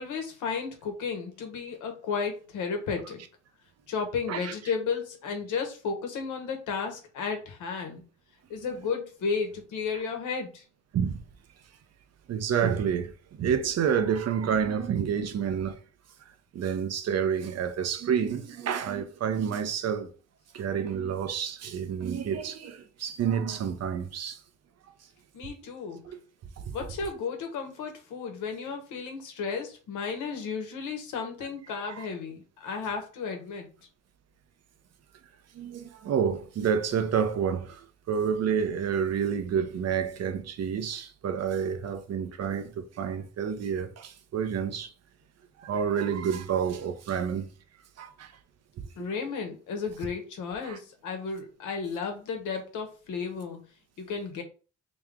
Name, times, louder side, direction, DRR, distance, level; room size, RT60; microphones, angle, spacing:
voice 1, 0.0-3.2 3.9-8.0 8.5-10.6 25.3-26.0 26.7-33.7 49.0-53.6 54.0-54.4, left 5 dB, 85° left, 1.2 m, -33 dB
voice 2, 12.3-15.8 16.5-20.1 20.5-24.4 26.1-26.2 26.6-26.8 31.8-32.1 35.5-44.9 45.6-47.5 48.0-48.3 50.6-50.8, right 7 dB, 55° right, 0.7 m, -29 dB
3.3 x 3.1 x 3.6 m
cardioid pair, 90°, 30 cm